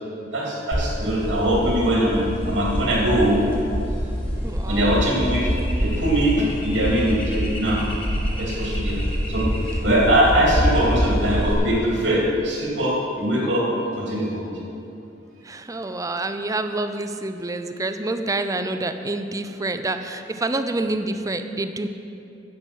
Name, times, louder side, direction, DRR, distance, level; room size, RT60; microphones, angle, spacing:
voice 1, 0.3-3.4 4.7-5.5 5.8-7.8 8.4-9.0 9.3-9.5 9.8-14.4, right 1 dB, 85° right, -4 dB, 2.9 m, -21 dB
sound 1, 0.7-11.5, equal, 30° left, 1.8 m, -26 dB
voice 2, 4.4-5.0 15.4-21.9, right 2 dB, 20° right, 8 dB, 0.5 m, -27 dB
10.0 x 8.6 x 6.2 m, 2.7 s
head